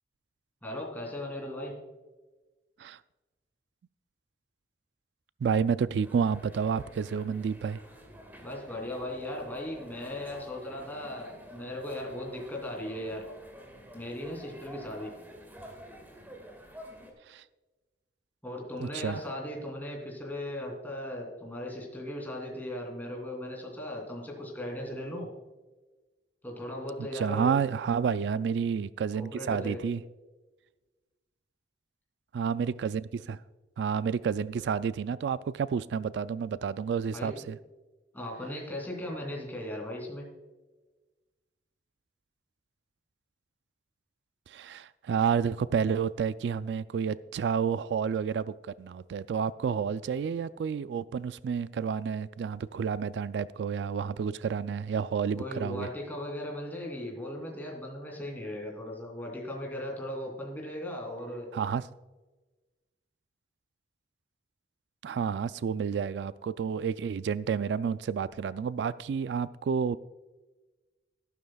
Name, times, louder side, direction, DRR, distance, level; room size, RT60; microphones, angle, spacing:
voice 1, 0.6-1.7 8.4-13.3 13.9-15.1 18.4-25.3 26.4-27.6 29.2-29.8 37.1-37.4 38.1-40.3 55.3-61.5, left 1 dB, 10° left, 2.9 m, -37 dB
voice 2, 5.4-7.8 17.3-17.4 18.8-19.2 27.1-30.0 32.3-33.4 33.8-37.6 44.5-55.9 61.5-61.9 65.0-70.0, right 6 dB, 80° right, 0.3 m, -30 dB
sound 1, 6.0-17.1, equal, 10° right, 1.9 m, -50 dB
13.0 x 12.0 x 2.3 m
head